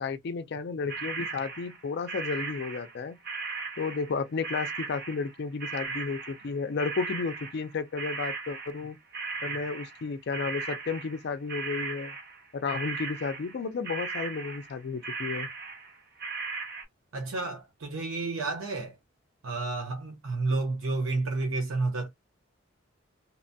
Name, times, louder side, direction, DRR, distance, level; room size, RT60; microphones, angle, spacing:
voice 1, 0.0-3.2 3.8-9.0 9.4-12.2 12.5-15.5, left 4 dB, 55° left, 0.4 m, -33 dB
sound 1, 0.9-3.0 3.2-10.1 10.3-13.6 13.8-14.8 15.0-16.8, right 4 dB, 50° right, 0.8 m, -37 dB
voice 2, 17.1-19.0 19.4-22.1, right 3 dB, 85° right, 0.7 m, -30 dB
2.9 x 2.1 x 2.6 m
head